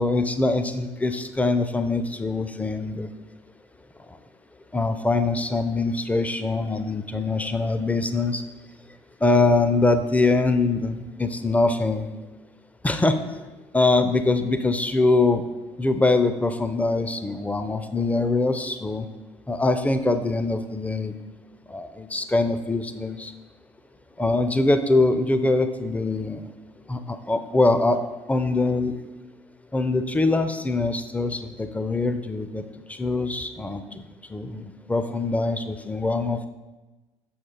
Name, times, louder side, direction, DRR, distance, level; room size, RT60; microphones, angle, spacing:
voice 1, 0.0-3.1 4.7-8.4 9.2-12.1 12.8-13.2 13.7-15.4 15.8-19.1 19.5-21.1 21.7-23.3 24.2-26.5 26.9-28.0 28.3-28.9 29.7-32.6 32.9-34.0 34.3-36.5, left 2 dB, 10° left, 9 dB, 0.4 m, -23 dB
6.2 x 4.3 x 3.8 m, 1.2 s
figure-of-eight pair, 55°, 14 cm